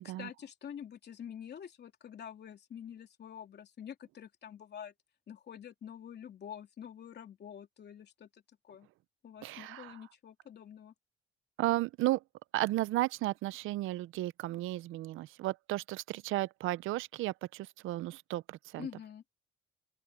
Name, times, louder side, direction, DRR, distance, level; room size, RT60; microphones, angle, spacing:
voice 1, 0.0-4.9 5.3-8.9 9.2-10.9 18.8-19.2, left 9 dB, 55° left, 3.1 m, -47 dB
voice 2, 9.4-10.0 11.6-12.2 12.5-18.9, right 17 dB, 90° right, 0.6 m, -34 dB
open air
cardioid pair, 90°, 20 cm